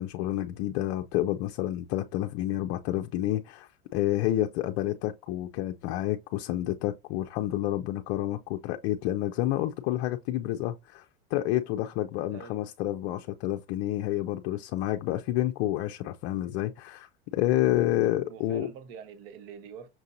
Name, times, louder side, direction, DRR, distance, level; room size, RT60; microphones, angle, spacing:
voice 1, 0.0-11.1 11.3-18.7, left 14 dB, 50° left, 0.5 m, -29 dB
voice 2, 12.3-12.6 18.3-19.9, right 7 dB, 65° right, 0.9 m, -45 dB
5.9 x 2.7 x 2.5 m
hypercardioid pair, 100°, 32 cm